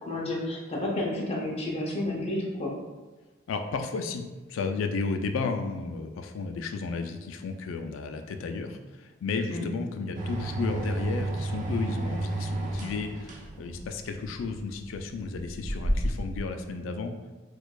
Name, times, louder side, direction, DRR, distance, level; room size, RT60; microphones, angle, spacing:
voice 1, 0.0-2.7 9.5-9.6, left 1 dB, 30° left, -2 dB, 0.6 m, -31 dB
voice 2, 3.5-4.2 4.5-17.1, left 4 dB, 85° left, 6 dB, 0.3 m, -33 dB
sound 1, 10.1-16.4, right 1 dB, 40° right, 0.4 m, -31 dB
4.5 x 2.3 x 2.3 m, 1.2 s
head